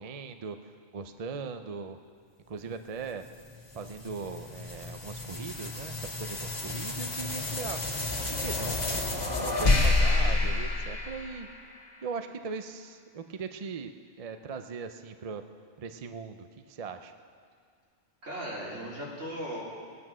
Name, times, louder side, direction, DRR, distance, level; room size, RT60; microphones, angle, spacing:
voice 1, 0.0-2.0 2.5-3.2 3.7-7.8 8.4-9.0 9.4-11.5 12.0-13.9 14.2-15.4 15.8-17.1, right 5 dB, 40° right, 8 dB, 0.5 m, -39 dB
sound 1, 3.2-11.8, left 2 dB, 35° left, 1.6 m, -29 dB
voice 2, 18.2-19.6, equal, 70° right, -5 dB, 3.5 m, -37 dB
20.0 x 9.5 x 6.1 m, 2.1 s
omnidirectional pair, 1.3 m